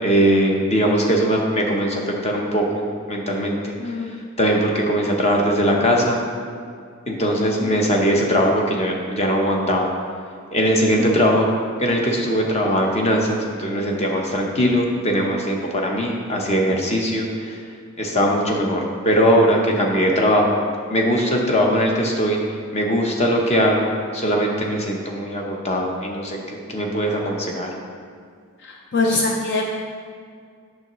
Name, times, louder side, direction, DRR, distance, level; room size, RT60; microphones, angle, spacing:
voice 1, 0.0-4.0 4.4-6.2 7.1-9.9 10.5-11.5 11.8-17.6 18.0-20.6 20.9-22.4 22.7-23.9 24.1-27.7, equal, 30° left, 0 dB, 0.9 m, -20 dB
voice 2, 3.8-4.1 11.0-11.2 28.6-29.7, left 2 dB, 55° left, 0 dB, 0.6 m, -23 dB
8.6 x 6.5 x 3.1 m, 2.2 s
head